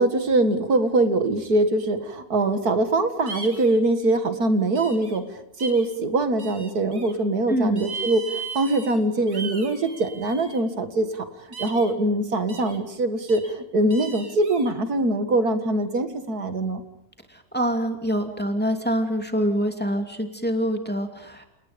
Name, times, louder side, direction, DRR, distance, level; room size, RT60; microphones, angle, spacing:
voice 1, 0.0-11.3 11.6-16.8, right 2 dB, 80° right, 8 dB, 2.4 m, -23 dB
sound 1, 3.3-3.8 4.7-5.2 5.6-5.9 6.4-7.1 7.8-9.0 9.3-10.6 11.5-11.9 12.5-12.8 13.3-13.5 13.9-14.7, right 4 dB, 60° right, 4.1 m, -37 dB
voice 2, 7.5-7.9 17.3-21.5, equal, 5° left, 4 dB, 2.7 m, -25 dB
30.0 x 29.0 x 5.3 m, 0.75 s
omnidirectional pair, 1.6 m